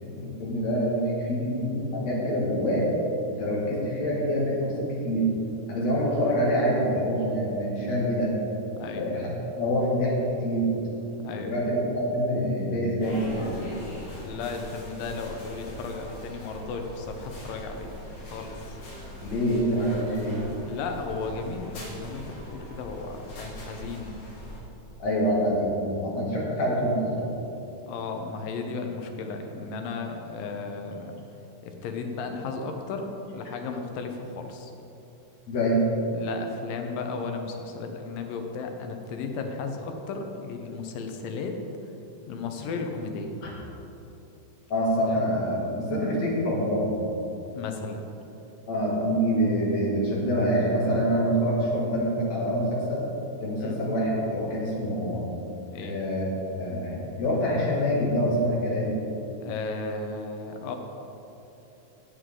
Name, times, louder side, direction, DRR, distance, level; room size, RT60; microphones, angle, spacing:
voice 1, 0.0-2.9 3.3-5.3 5.7-8.3 8.8-10.8 11.3-13.6 19.2-20.5 25.0-27.3 35.5-35.8 43.4-43.5 44.7-46.9 48.7-53.0 53.4-55.2 55.8-59.0, equal, 55° left, -5 dB, 3.5 m, -26 dB
sound 1, 13.0-24.6, left 1 dB, 75° left, 4.2 m, -41 dB
voice 2, 14.2-17.9 18.3-18.6 20.6-24.1 27.9-31.2 31.6-34.7 36.1-41.6 42.3-43.4 47.5-48.0 53.6-53.8 55.7-56.0 59.4-60.8, left 4 dB, 90° left, 4 dB, 2.7 m, -34 dB
16.0 x 8.2 x 3.8 m, 2.9 s
omnidirectional pair, 3.8 m